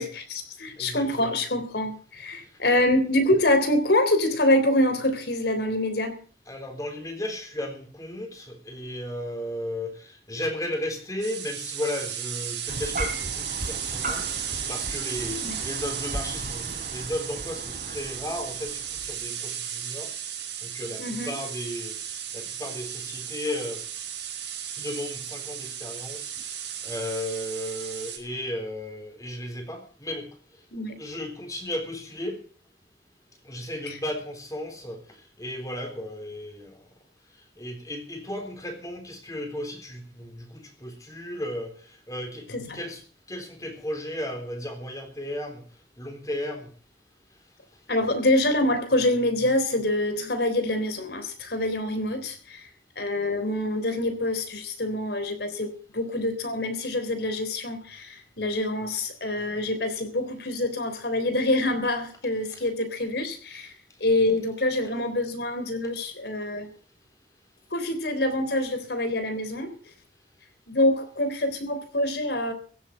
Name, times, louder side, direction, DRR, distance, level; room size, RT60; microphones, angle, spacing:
voice 1, 0.0-6.1 15.4-15.6 21.0-21.3 30.7-31.0 33.9-34.0 42.5-42.8 47.9-52.7 53.0-63.7 64.0-66.7 67.7-69.7 70.7-72.5, left 1 dB, 65° left, 8 dB, 3.6 m, -26 dB
voice 2, 0.8-1.3 6.5-16.6 16.9-20.1 20.6-23.9 24.8-30.3 31.0-32.4 33.4-36.8 37.6-42.5 42.7-43.0 43.3-45.6 46.0-46.7 62.5-62.6, left 1 dB, 20° left, 4 dB, 3.7 m, -35 dB
sound 1, 11.2-28.2, right 9 dB, 85° right, 5.2 m, -35 dB
sound 2, 12.7-19.2, right 1 dB, 50° right, 3.3 m, -36 dB
16.0 x 8.4 x 7.6 m, 0.42 s
head